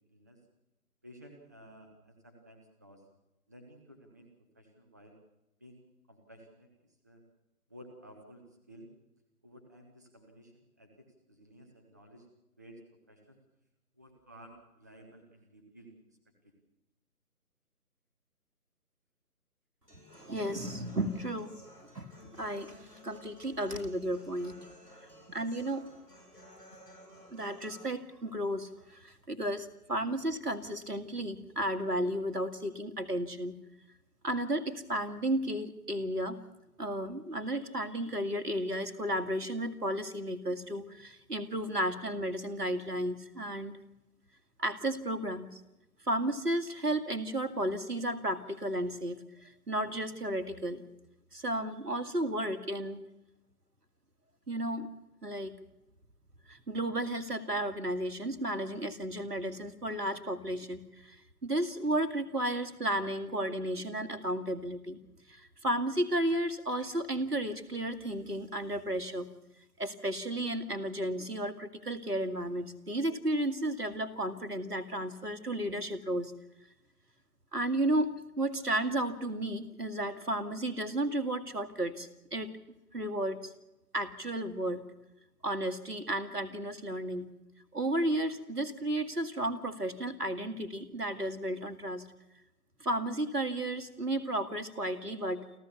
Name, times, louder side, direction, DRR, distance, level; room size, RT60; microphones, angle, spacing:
voice 1, 1.0-3.0 3.5-4.3 4.5-5.2 5.6-5.8 6.1-6.7 7.0-7.2 7.7-8.9 9.4-12.3 12.6-12.8 13.1-13.4 13.9-16.2 16.4-16.5, right 1 dB, 10° right, 4 dB, 0.9 m, -54 dB
Human voice / Acoustic guitar, 19.9-27.9, equal, 85° left, 7.1 m, -55 dB
voice 2, 19.9-21.5 21.8-24.5 25.3-25.9 27.3-33.5 34.2-36.4 36.8-43.8 44.6-45.6 46.0-50.8 51.3-53.1 54.5-54.9 55.2-55.5 56.5-61.2 61.4-65.0 65.3-69.3 69.8-76.3 77.5-82.6 82.9-83.5 83.9-84.8 85.4-87.3 87.7-92.0 92.8-95.5, right 1 dB, 80° right, 9 dB, 2.3 m, -33 dB
28.5 x 13.5 x 7.0 m, 0.96 s
figure-of-eight pair, 150°, 46 cm